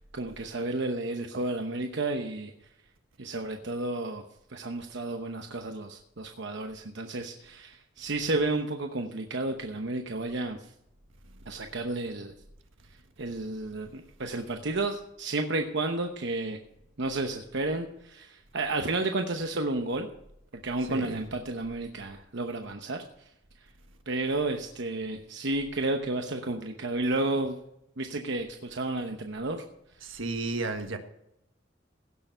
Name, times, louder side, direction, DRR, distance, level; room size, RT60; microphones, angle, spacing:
voice 1, 0.1-2.5 3.2-4.2 4.5-10.7 11.5-12.3 13.2-16.6 17.0-20.1 20.5-23.3 24.1-27.6 28.0-29.6, right 2 dB, 65° right, 4 dB, 1.0 m, -32 dB
voice 2, 20.8-21.2 30.0-31.0, right 3 dB, 80° right, 6 dB, 1.6 m, -33 dB
16.5 x 6.8 x 5.6 m, 0.79 s
head